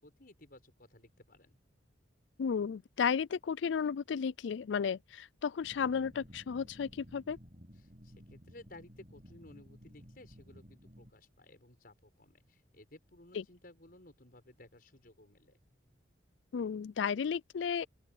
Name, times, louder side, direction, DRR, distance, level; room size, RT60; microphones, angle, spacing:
voice 1, 0.0-1.5 7.7-15.6, left 1 dB, 50° left, 6.3 m, -57 dB
voice 2, 2.4-7.4 13.3-13.4 16.5-17.9, left 6 dB, 70° left, 0.4 m, -33 dB
sound 1, 5.6-11.1, equal, 40° right, 7.6 m, -55 dB
open air
head